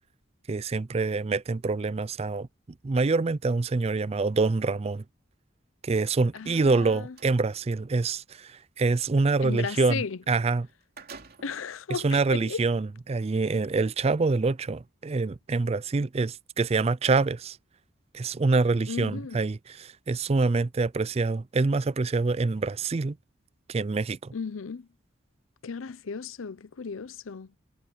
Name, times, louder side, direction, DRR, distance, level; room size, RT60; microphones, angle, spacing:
voice 1, 0.5-2.5 2.8-5.0 5.8-10.7 12.0-17.6 18.1-23.2 23.7-24.3, right 3 dB, 30° right, 0.4 m, -26 dB
voice 2, 6.3-7.2 9.4-10.2 11.4-12.6 18.9-19.4 24.3-24.9 25.6-27.6, left 5 dB, 85° left, 0.6 m, -35 dB
sound 1, 6.4-7.4 10.2-10.3 10.6-11.7 12.4-12.5 13.4-13.7, right 4 dB, 50° right, 2.9 m, -48 dB
head